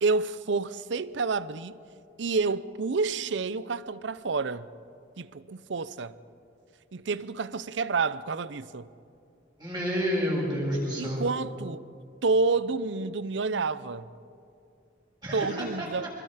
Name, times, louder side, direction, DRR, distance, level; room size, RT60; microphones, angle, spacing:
voice 1, 0.0-1.7 2.2-4.7 5.2-6.2 6.9-8.9 11.0-11.8 12.2-14.1 15.3-16.1, right 4 dB, 70° right, 0.6 m, -29 dB
voice 2, 9.6-11.2 15.2-15.9, equal, 20° right, 7.4 m, -29 dB
26.5 x 24.0 x 5.0 m
head